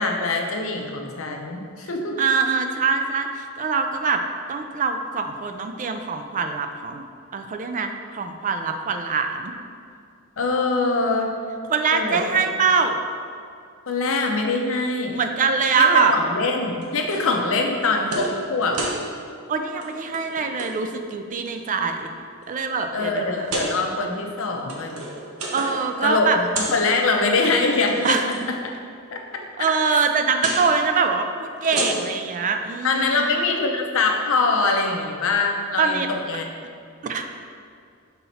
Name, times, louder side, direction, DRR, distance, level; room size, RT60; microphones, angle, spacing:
voice 1, 0.0-2.1 10.4-11.3 11.9-12.4 13.9-15.2 15.7-18.8 22.9-25.0 26.0-26.2 26.5-28.2 29.1-29.2 32.8-36.5, left 3 dB, 65° left, 2 dB, 0.7 m, -23 dB
voice 2, 2.2-4.2 4.5-7.0 7.3-9.5 11.7-13.0 15.1-16.1 19.5-22.1 22.5-23.4 23.8-23.9 25.5-26.4 28.0-28.2 29.6-33.2 35.8-36.1 37.0-37.2, right 5 dB, 35° right, 6 dB, 0.3 m, -23 dB
sound 1, 16.8-17.4 17.8-18.3 18.6-19.0 19.7-19.9 20.1-20.7 21.3-21.9 22.4-22.5 23.4-23.7 24.5-25.9 26.1-26.8 27.7-28.4 30.4-30.6 31.5-32.3, right 2 dB, 80° right, 0.9 m, -30 dB
5.7 x 4.1 x 4.2 m, 2.3 s
head